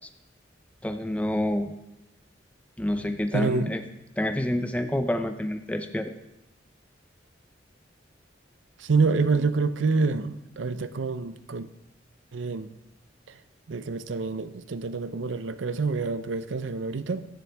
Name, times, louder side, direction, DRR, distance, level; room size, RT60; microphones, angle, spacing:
voice 1, 0.8-1.7 2.8-3.8 4.2-6.1, left 1 dB, 5° left, 7 dB, 0.5 m, -28 dB
voice 2, 3.3-3.7 8.8-11.7 12.3-12.7 13.7-17.3, right 4 dB, 90° right, 13 dB, 0.6 m, -27 dB
12.5 x 10.5 x 3.4 m, 0.88 s
head